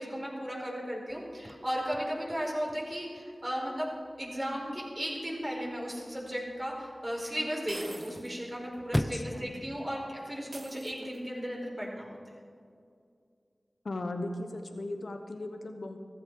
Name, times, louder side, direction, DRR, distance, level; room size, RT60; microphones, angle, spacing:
voice 1, 0.0-3.9 4.2-12.1, equal, 20° right, -3 dB, 4.7 m, -35 dB
Chirp tweet / Car / Slam, 1.1-11.1, equal, 10° left, 0.7 m, -42 dB
sound 1, 6.3-6.4 7.7-8.4 8.7-8.8 10.5-11.4, right 2 dB, 50° right, 1.2 m, -45 dB
voice 2, 8.9-9.7 13.8-16.0, left 2 dB, 80° left, 6 dB, 1.1 m, -38 dB
15.0 x 14.5 x 4.8 m, 2.3 s
wide cardioid pair, 45°, 0 cm